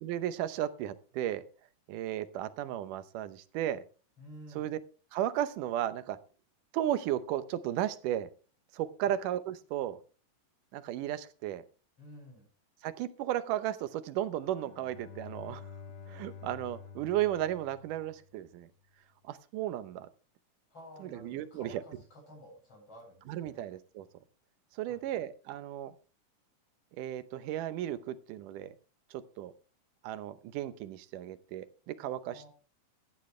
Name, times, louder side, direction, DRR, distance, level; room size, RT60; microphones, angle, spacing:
voice 1, 0.0-1.4 1.9-3.8 4.5-4.8 5.1-6.2 6.7-8.3 8.7-10.0 10.7-11.6 12.8-15.6 16.1-18.7 19.2-20.1 21.0-21.8 23.3-24.1 24.8-25.9 27.0-28.7 29.1-29.5 30.0-32.5, right 12 dB, 90° right, 13 dB, 2.4 m, -34 dB
voice 2, 4.2-4.7 9.0-9.2 12.0-12.4 20.7-23.7 24.9-25.2 32.3-32.5, equal, 45° left, -2 dB, 8.9 m, -52 dB
Bowed string instrument, 14.4-18.5, left 5 dB, 85° left, 0.9 m, -49 dB
14.5 x 11.0 x 3.2 m, 0.36 s
omnidirectional pair, 3.6 m